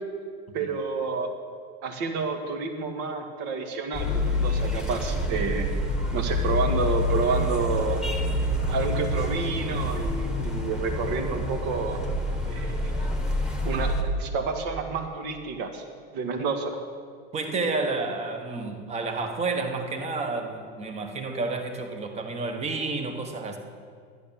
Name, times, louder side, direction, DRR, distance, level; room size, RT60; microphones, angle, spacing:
voice 1, 0.5-1.3 1.8-5.7 6.1-8.0 8.7-12.0 12.5-12.9 13.6-15.8 16.1-16.7, right 4 dB, 55° right, 5 dB, 1.9 m, -29 dB
sound 1, 3.9-14.0, left 1 dB, 5° right, 1.5 m, -27 dB
voice 2, 17.3-23.6, right 3 dB, 20° right, 5 dB, 1.3 m, -30 dB
12.0 x 11.0 x 7.2 m, 2.1 s
supercardioid pair, 145°, 30 cm